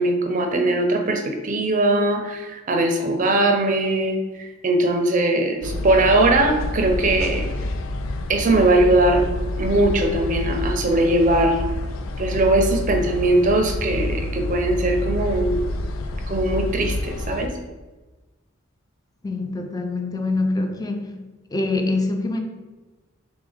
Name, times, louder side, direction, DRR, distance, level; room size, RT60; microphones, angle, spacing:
voice 1, 0.0-7.4 8.3-9.2 9.6-11.6 12.2-15.6 16.3-17.5, right 2 dB, 40° right, 5 dB, 0.5 m, -20 dB
sound 1, 5.6-17.5, left 1 dB, 80° left, 0.4 m, -28 dB
voice 2, 19.2-21.1 21.5-22.4, left 2 dB, 20° left, 5 dB, 0.4 m, -24 dB
3.5 x 3.5 x 3.5 m, 1.2 s
head